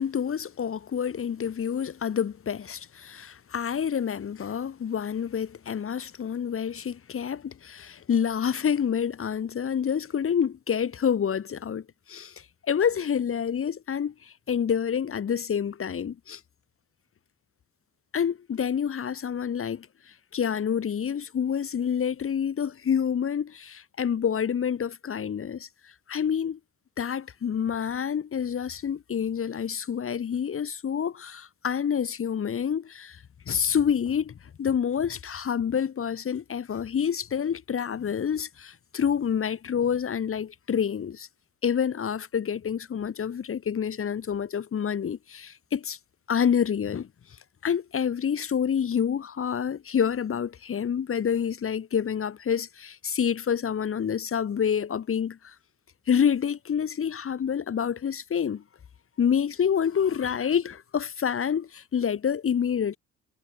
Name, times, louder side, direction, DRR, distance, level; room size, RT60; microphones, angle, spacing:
voice 1, 0.0-16.4 18.1-26.6 27.0-41.3 41.6-46.0 46.3-47.1 47.6-55.6 56.1-58.6 59.2-63.0, left 8 dB, 45° left, 1.8 m, -28 dB
cardioid pair, 90°, 30 cm